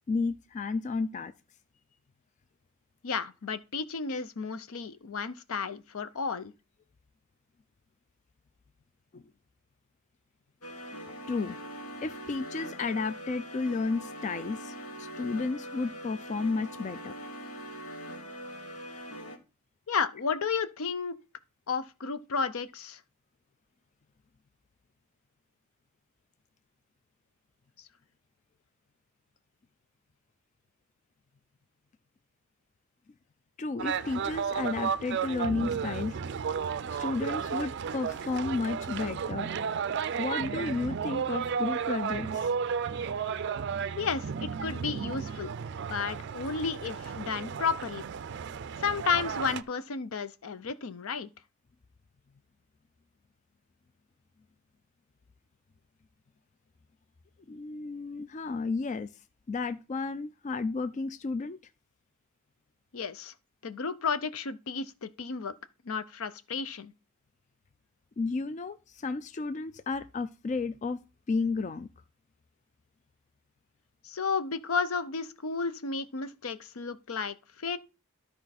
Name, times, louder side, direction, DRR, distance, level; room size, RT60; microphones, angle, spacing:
voice 1, 0.1-1.3 9.1-9.2 11.3-11.6 12.0-17.1 33.6-36.2 36.9-39.5 40.1-42.5 57.5-59.1 59.5-61.6 68.2-71.0 71.3-71.9, left 4 dB, 35° left, 0.3 m, -32 dB
voice 2, 3.0-6.5 19.9-21.2 21.7-23.0 44.0-45.5 45.9-48.1 48.8-51.3 62.9-63.3 63.6-65.5 65.8-66.9 74.0-77.8, left 5 dB, 75° left, 0.6 m, -32 dB
sound 1, 10.6-19.4, equal, 90° left, 1.4 m, -42 dB
sound 2, 33.8-49.6, right 6 dB, 55° right, 0.4 m, -33 dB
12.5 x 4.5 x 4.1 m
head